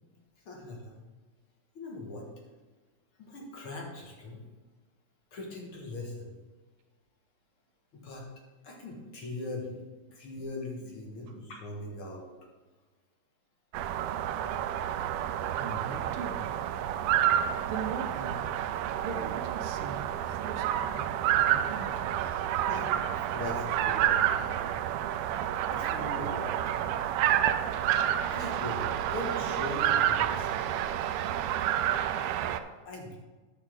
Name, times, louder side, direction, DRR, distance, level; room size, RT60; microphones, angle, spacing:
voice 1, 0.5-1.0 1.7-2.3 3.2-4.4 5.3-6.3 8.0-8.3 8.6-9.8 10.1-12.3 22.7-24.8 25.7-26.6 27.0-27.1 28.1-30.9 32.9-33.2, left 2 dB, 50° left, -1 dB, 2.1 m, -40 dB
voice 2, 11.3-11.6 15.6-16.6 17.7-18.5 19.0-22.4, right 4 dB, 70° right, 2 dB, 1.3 m, -41 dB
sound 1, 13.7-32.6, right 11 dB, 85° right, 1.4 m, -29 dB
9.9 x 7.3 x 3.8 m, 1.3 s
omnidirectional pair, 3.4 m